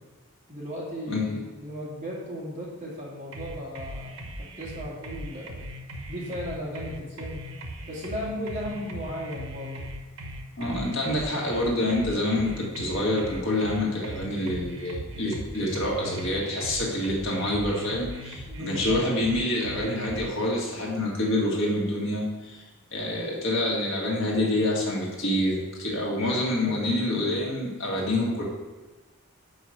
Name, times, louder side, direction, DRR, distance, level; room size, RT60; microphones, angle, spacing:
voice 1, 0.5-5.6 6.1-7.4 7.9-9.8 18.5-19.0 22.7-22.9 26.3-26.8, equal, 30° right, -7 dB, 2.4 m, -36 dB
voice 2, 1.1-1.4 10.6-22.6 22.9-28.4, left 1 dB, 60° left, -3 dB, 1.7 m, -27 dB
sound 1, 3.3-20.3, equal, 75° right, 1.1 m, -39 dB
5.5 x 5.0 x 6.3 m, 1.3 s
head